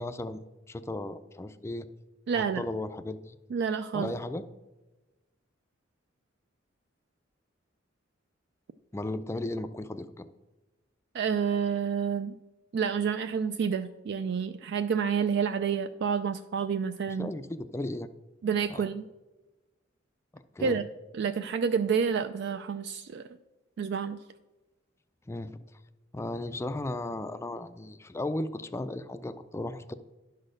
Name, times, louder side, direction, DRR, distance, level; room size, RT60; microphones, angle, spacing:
voice 1, 0.0-1.9 2.3-3.4 3.9-4.4 8.9-10.3 17.2-18.1 18.7-18.9 20.3-20.8 25.3-25.6 26.1-29.9, left 1 dB, 15° left, 12 dB, 0.3 m, -35 dB
voice 2, 2.3-2.6 3.5-4.1 11.1-12.3 12.7-17.3 18.4-19.0 20.6-20.8 21.1-23.2 23.8-24.2, right 6 dB, 60° right, 10 dB, 0.3 m, -29 dB
11.0 x 4.2 x 6.4 m, 1.1 s
head